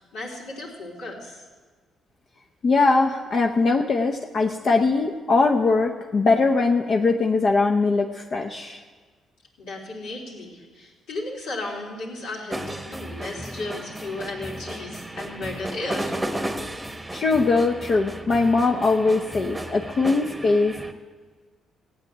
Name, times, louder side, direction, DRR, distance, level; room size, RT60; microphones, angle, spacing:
voice 1, 0.0-1.4 9.6-16.2, left 2 dB, 80° left, -4 dB, 3.8 m, -35 dB
voice 2, 2.6-8.8 17.1-20.8, left 3 dB, 50° left, 2 dB, 0.8 m, -21 dB
sound 1, 12.5-20.9, right 1 dB, 10° right, 1.1 m, -34 dB
15.5 x 8.8 x 8.1 m, 1.5 s
cardioid pair, 90°, 0 cm